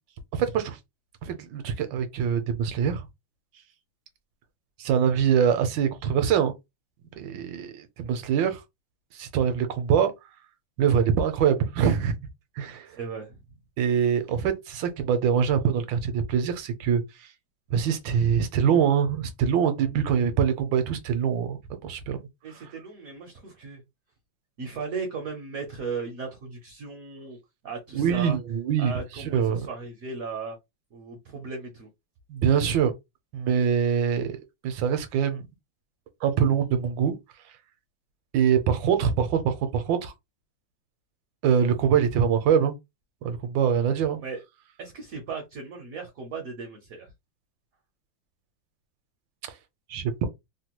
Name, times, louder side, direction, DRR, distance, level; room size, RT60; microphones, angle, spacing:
voice 1, 0.3-0.8 1.2-3.1 4.8-6.5 7.2-8.6 9.1-10.1 10.8-12.2 12.6-12.9 13.8-17.3 17.7-22.2 22.5-22.6 27.9-29.6 32.3-32.9 33.3-34.4 34.6-35.5 36.2-37.2 38.3-40.1 41.4-42.7 43.2-44.2 49.9-50.3, right 7 dB, 80° right, 1.3 m, -24 dB
voice 2, 12.9-13.4 22.4-23.8 24.6-27.4 27.6-28.4 28.8-30.6 30.9-31.9 44.2-44.4 44.8-47.1, right 4 dB, 60° right, 0.9 m, -36 dB
3.3 x 2.2 x 2.9 m
omnidirectional pair, 2.2 m